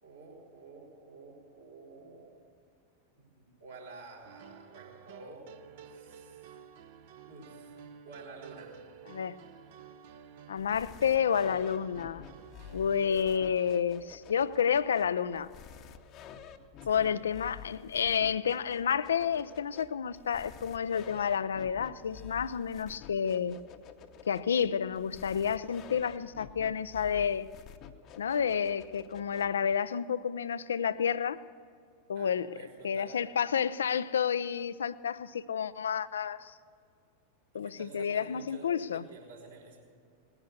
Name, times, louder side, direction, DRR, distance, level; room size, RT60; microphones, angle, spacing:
voice 1, 0.0-2.3 3.2-5.5 5.9-6.6 7.2-8.7 16.8-17.1 32.1-33.2 37.5-39.8, right 3 dB, 70° right, -4 dB, 4.6 m, -50 dB
sound 1, 4.2-13.8, right 7 dB, 50° right, 0.8 m, -51 dB
voice 2, 10.5-12.2 12.7-15.5 16.9-23.6 24.3-27.5 28.2-31.4 32.1-32.5 32.8-36.5 37.5-39.0, left 7 dB, 65° left, 17 dB, 0.4 m, -30 dB
sound 2, 10.6-29.8, left 8 dB, 35° left, 0.9 m, -50 dB
19.0 x 10.5 x 6.6 m, 2.3 s
figure-of-eight pair, 90°, 0 cm